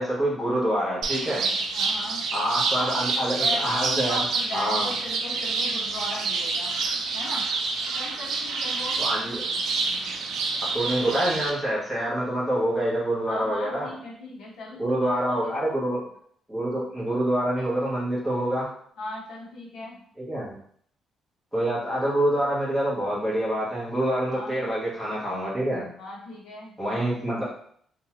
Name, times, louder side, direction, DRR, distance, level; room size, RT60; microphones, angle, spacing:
voice 1, 0.0-1.5 2.3-4.2 4.5-4.9 9.0-9.4 10.7-13.9 14.8-16.0 16.5-18.7 20.3-20.5 21.5-25.9 26.8-27.4, right 1 dB, ahead, -9 dB, 1.1 m, -26 dB
sound 1, 1.0-11.5, right 4 dB, 70° right, 0.4 m, -28 dB
voice 2, 1.7-2.3 2.7-3.1 3.4-6.7 7.1-7.5 8.0-9.0 13.3-15.8 19.0-20.0 24.2-24.6 26.0-26.8, left 2 dB, 80° left, -3 dB, 0.8 m, -37 dB
2.8 x 2.3 x 2.9 m, 0.63 s
cardioid pair, 150°, 0 cm